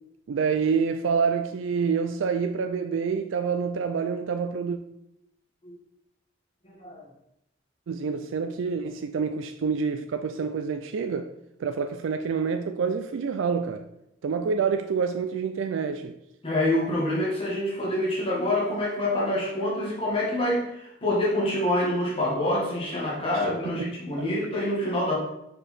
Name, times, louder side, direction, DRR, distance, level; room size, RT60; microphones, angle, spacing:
voice 1, 0.3-4.8 7.9-11.3 11.6-13.9 14.2-16.2 23.3-24.0, right 5 dB, 85° right, 0.4 m, -27 dB
voice 2, 6.6-7.0 16.4-25.2, left 1 dB, 30° left, 1.6 m, -26 dB
5.0 x 4.5 x 4.2 m
head